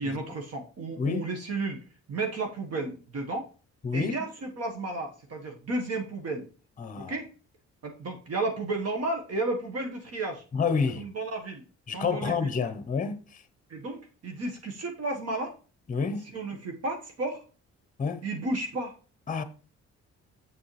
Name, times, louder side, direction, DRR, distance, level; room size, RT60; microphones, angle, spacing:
voice 1, 0.0-1.8 2.1-3.5 3.9-6.5 7.0-7.3 7.8-10.4 11.0-11.6 11.9-12.5 13.7-15.5 16.2-17.4 18.2-18.9, right 2 dB, 55° right, 1.5 m, -33 dB
voice 2, 3.8-4.2 6.8-7.1 10.5-11.0 11.9-13.4 15.9-16.2 18.0-18.2 19.3-19.4, left 5 dB, 25° left, 0.8 m, -29 dB
6.9 x 6.3 x 3.2 m
cardioid pair, 90°, 30 cm